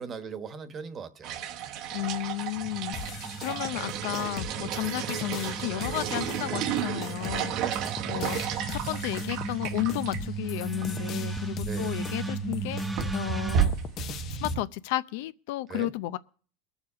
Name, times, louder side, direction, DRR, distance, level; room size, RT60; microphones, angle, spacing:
voice 1, 0.0-1.4 7.6-8.0 10.9-11.3 11.6-12.0 15.7-15.9, right 5 dB, 25° right, 1.2 m, -40 dB
sound 1, 1.2-10.2 10.5-10.6 10.8-10.9 11.9-12.1 12.5-14.6, right 9 dB, 50° right, 0.9 m, -33 dB
voice 2, 1.9-7.7 8.1-8.4 8.7-12.8 13.1-13.7 14.4-16.2, left 16 dB, 70° left, 0.5 m, -33 dB
sound 2, 2.6-13.7, right 4 dB, 10° right, 0.7 m, -36 dB
sound 3, 2.9-14.5, left 8 dB, 35° left, 0.7 m, -41 dB
20.5 x 7.2 x 4.9 m
supercardioid pair, 150°, 0 cm